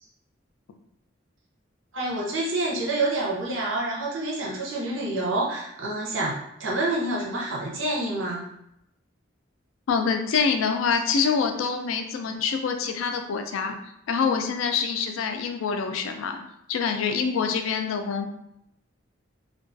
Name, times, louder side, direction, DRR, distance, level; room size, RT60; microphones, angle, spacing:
voice 1, 1.9-8.4, right 2 dB, 75° right, -3 dB, 0.6 m, -28 dB
voice 2, 9.9-13.8 14.1-16.4 16.7-18.3, left 5 dB, 90° left, 6 dB, 0.3 m, -25 dB
2.3 x 2.2 x 2.5 m, 0.78 s
head